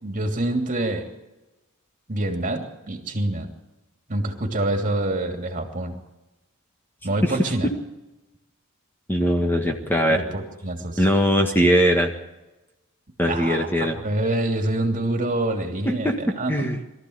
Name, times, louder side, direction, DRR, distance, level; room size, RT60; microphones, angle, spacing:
voice 1, 0.0-1.1 2.1-3.5 4.1-6.0 7.0-7.7 10.1-11.0 13.2-13.7 14.0-16.7, right 1 dB, 40° right, 4 dB, 2.9 m, -26 dB
voice 2, 9.1-10.2 11.0-12.1 13.2-14.0 15.8-16.2 16.5-16.8, equal, 10° left, 3 dB, 1.6 m, -20 dB
23.0 x 14.0 x 8.1 m, 1.0 s
head